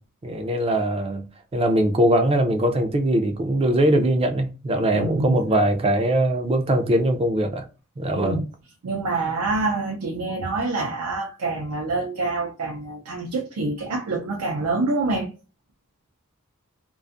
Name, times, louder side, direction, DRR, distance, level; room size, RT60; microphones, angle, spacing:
voice 1, 0.2-1.3 1.5-7.7 8.0-8.4, right 1 dB, 25° right, 0.3 m, -21 dB
voice 2, 4.9-5.4 8.1-8.5 8.8-15.3, right 3 dB, 80° right, 0.5 m, -26 dB
2.4 x 2.3 x 2.4 m
head